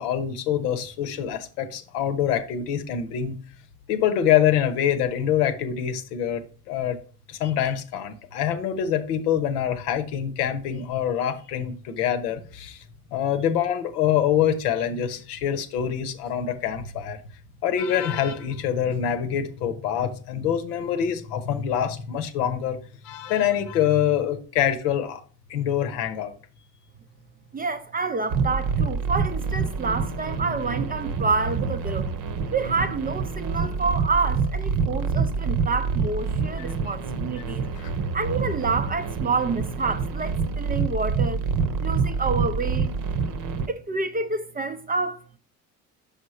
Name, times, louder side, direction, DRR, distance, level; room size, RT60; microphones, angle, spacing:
voice 1, 0.0-3.3 3.9-7.0 7.3-12.8 13.1-17.2 17.6-22.8 23.0-25.2 25.5-26.3 37.7-37.9, left 9 dB, 75° left, 0.9 m, -25 dB
voice 2, 27.5-32.1 32.5-37.6 38.1-41.4 41.8-42.9 43.7-45.2, right 4 dB, 20° right, 0.5 m, -28 dB
sound 1, 28.3-43.7, right 5 dB, 45° right, 0.9 m, -27 dB
5.6 x 5.1 x 4.2 m
hypercardioid pair, 60°, 47 cm